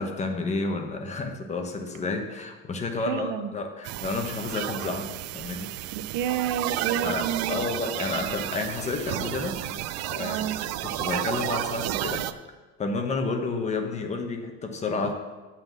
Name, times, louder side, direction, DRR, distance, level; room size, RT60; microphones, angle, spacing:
voice 1, 0.0-5.7 7.0-9.6 10.1-12.3 12.8-15.1, left 3 dB, 25° left, 4 dB, 1.0 m, -31 dB
voice 2, 3.1-3.5 5.9-7.6 10.2-10.6, right 10 dB, 80° right, 10 dB, 0.8 m, -30 dB
sound 1, 3.8-12.3, right 13 dB, 60° right, 0.5 m, -32 dB
7.6 x 5.9 x 7.3 m, 1.3 s
cardioid pair, 155°, 29 cm